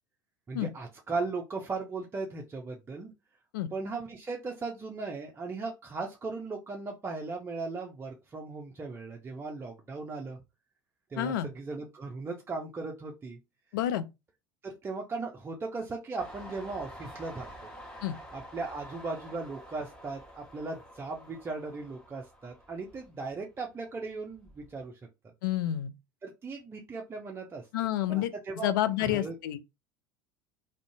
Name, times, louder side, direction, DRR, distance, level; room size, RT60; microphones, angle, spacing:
voice 1, 0.5-3.1 3.7-10.4 11.1-13.4 14.6-17.7 18.3-24.9 26.2-27.6 28.1-28.7 29.0-29.3, right 3 dB, 20° right, 0.5 m, -37 dB
voice 2, 11.2-11.5 13.7-14.0 18.0-18.2 25.4-25.9 27.7-28.3 28.6-29.6, left 12 dB, 65° left, 0.4 m, -29 dB
Train, 16.2-23.6 24.0-24.8, equal, 5° left, 1.1 m, -48 dB
2.5 x 2.1 x 2.6 m
figure-of-eight pair, 70°, 12 cm